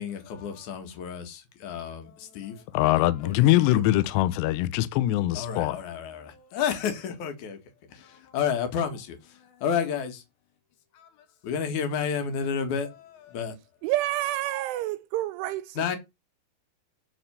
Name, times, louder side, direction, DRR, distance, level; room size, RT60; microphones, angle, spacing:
voice 1, 0.0-2.7 3.2-3.8 5.3-7.6 7.9-10.2 10.9-13.5 15.8-16.0, left 7 dB, 55° left, 2.2 m, -31 dB
voice 2, 2.7-5.8, left 15 dB, 80° left, 2.6 m, -22 dB
voice 3, 13.8-16.0, right 15 dB, 85° right, 3.1 m, -29 dB
10.0 x 4.4 x 6.6 m
omnidirectional pair, 5.4 m